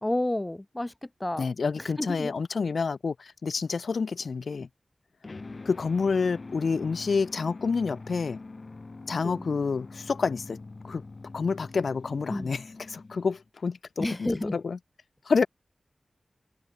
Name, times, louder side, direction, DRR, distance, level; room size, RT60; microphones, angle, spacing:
voice 1, 0.0-1.5 1.8-2.3 9.2-9.5 12.3-12.5 14.0-14.6, left 1 dB, 20° left, 3.7 m, -31 dB
voice 2, 1.4-4.7 5.6-8.4 9.1-10.6 10.8-11.0 11.3-14.8 15.3-15.5, left 5 dB, 80° left, 3.0 m, -28 dB
sound 1, 5.2-13.5, left 3 dB, 45° left, 4.4 m, -44 dB
wide cardioid pair, 80°, 0 cm